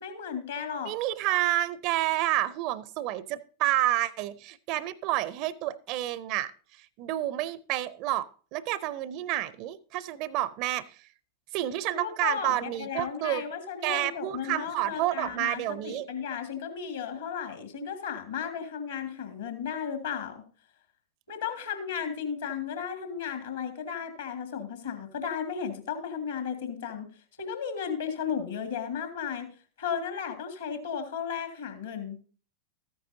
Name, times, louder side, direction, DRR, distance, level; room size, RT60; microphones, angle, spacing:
voice 1, 0.0-0.9 11.9-20.4 21.3-27.1 27.4-29.5 29.8-32.2, left 7 dB, 65° left, 7 dB, 1.8 m, -34 dB
voice 2, 0.8-6.5 7.0-10.9 11.5-13.4 13.8-16.1, right 14 dB, 45° right, 19 dB, 0.5 m, -29 dB
13.5 x 9.3 x 2.7 m, 0.40 s
figure-of-eight pair, 90°, 0 cm